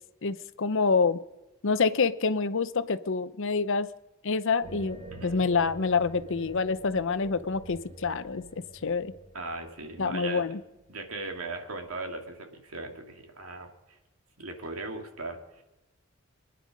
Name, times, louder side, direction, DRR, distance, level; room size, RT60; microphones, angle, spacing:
voice 1, 0.2-1.2 1.6-3.9 4.2-8.4 8.8-9.1 10.0-10.6, left 4 dB, 65° left, 13 dB, 0.7 m, -27 dB
sound 1, 4.6-11.9, right 2 dB, 40° right, 3.4 m, -47 dB
voice 2, 5.1-5.4 9.3-10.5 10.9-14.0 14.4-15.6, right 2 dB, 90° right, 3 dB, 2.4 m, -38 dB
27.0 x 10.0 x 5.3 m, 1.0 s
head